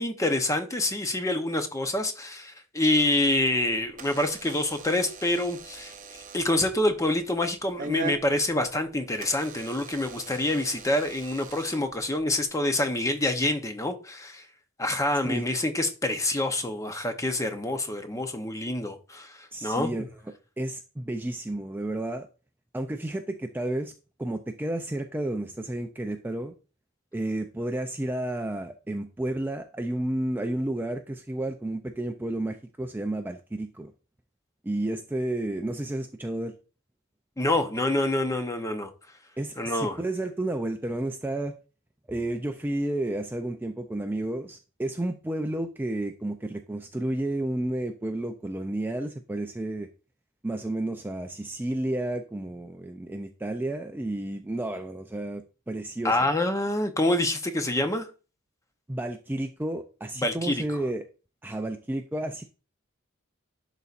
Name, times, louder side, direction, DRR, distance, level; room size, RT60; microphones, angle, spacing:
voice 1, 0.0-5.9 6.3-14.5 14.8-20.1 37.4-38.9 39.6-40.0 56.0-58.1 60.2-60.8, left 1 dB, 15° left, 0.7 m, -27 dB
Door / Alarm, 3.2-12.5, right 4 dB, 40° right, 0.7 m, -42 dB
voice 2, 19.5-20.0 20.6-22.3 22.7-23.9 24.2-26.5 27.1-33.9 34.6-36.5 39.4-41.5 42.1-49.9 50.4-56.2 58.9-61.0 61.4-62.4, right 1 dB, 10° right, 0.4 m, -31 dB
11.0 x 4.0 x 2.5 m
head